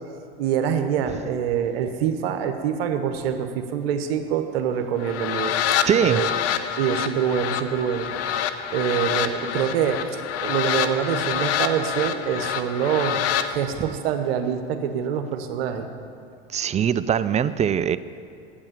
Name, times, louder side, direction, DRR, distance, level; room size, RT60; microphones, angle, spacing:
voice 1, 0.4-5.5 6.0-6.3 6.8-8.1 8.7-15.9, right 8 dB, 75° right, 1.1 m, -25 dB
sound 1, 5.0-13.5, left 9 dB, 55° left, 0.7 m, -26 dB
voice 2, 5.8-6.2 16.5-18.0, right 8 dB, 25° right, 0.4 m, -21 dB
8.7 x 8.5 x 7.5 m
hypercardioid pair, 85°, 30 cm